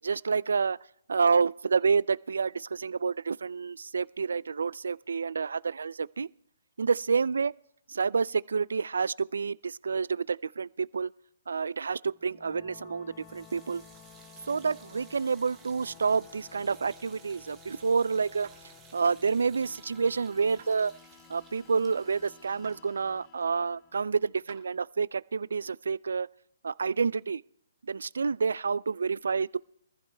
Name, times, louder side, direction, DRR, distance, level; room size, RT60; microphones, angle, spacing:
voice 1, 0.0-0.8 1.1-6.3 6.8-7.5 7.9-11.1 11.5-13.8 14.5-18.5 18.9-20.9 21.3-26.3 26.6-27.4 27.8-29.6, right 5 dB, 85° right, 0.4 m, -28 dB
sound 1, 12.1-24.5, left 9 dB, 20° left, 0.5 m, -55 dB
sound 2, 13.1-24.2, right 8 dB, 15° right, 0.9 m, -58 dB
sound 3, 18.4-18.6 20.6-20.8 22.6-22.8 24.5-24.7, right 9 dB, 50° right, 2.4 m, -50 dB
24.5 x 14.5 x 2.3 m
hypercardioid pair, 165°, 0 cm